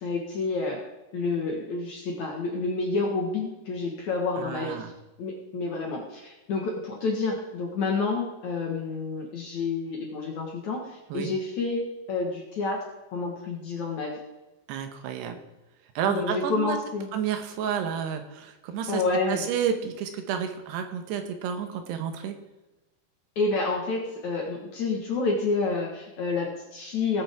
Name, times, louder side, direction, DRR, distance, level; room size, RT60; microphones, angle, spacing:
voice 1, 0.0-0.8 1.1-4.8 5.2-10.8 11.1-11.8 12.1-12.8 13.1-14.1 16.1-17.1 18.9-19.4 23.4-27.2, left 3 dB, 60° left, 0 dB, 2.0 m, -29 dB
voice 2, 4.4-4.9 11.1-11.3 14.7-15.4 16.0-16.8 17.1-19.0 19.3-22.3, right 8 dB, 75° right, 6 dB, 3.1 m, -30 dB
18.5 x 8.9 x 3.6 m, 1.1 s
omnidirectional pair, 5.2 m